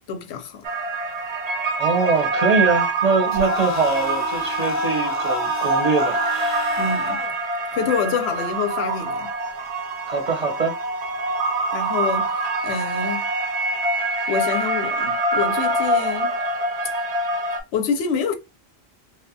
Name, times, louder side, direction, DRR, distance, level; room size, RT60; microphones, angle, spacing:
voice 1, 0.1-0.7 6.8-7.2 7.7-9.3 11.7-12.4 12.6-13.3 14.3-16.4 17.7-18.3, left 6 dB, 90° left, 0.8 m, -26 dB
sound 1, 0.6-17.6, right 2 dB, 85° right, 0.8 m, -25 dB
voice 2, 1.8-6.8 10.1-10.7, right 4 dB, 45° right, 0.6 m, -23 dB
sound 2, 3.3-7.3, left 2 dB, 20° left, 0.5 m, -30 dB
2.7 x 2.1 x 2.5 m
omnidirectional pair, 1.1 m